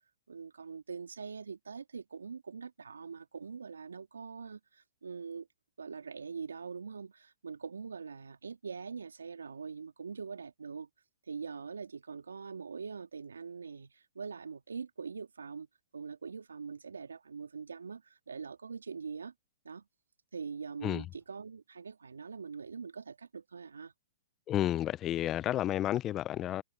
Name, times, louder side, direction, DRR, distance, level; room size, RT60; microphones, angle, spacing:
voice 1, 0.3-5.5 5.8-10.9 11.2-15.7 15.9-19.3 19.6-19.8 20.3-23.9, right 5 dB, 85° right, 3.1 m, -43 dB
voice 2, 24.5-26.6, left 12 dB, 25° left, 0.8 m, -31 dB
hypercardioid pair, 125°, 0 cm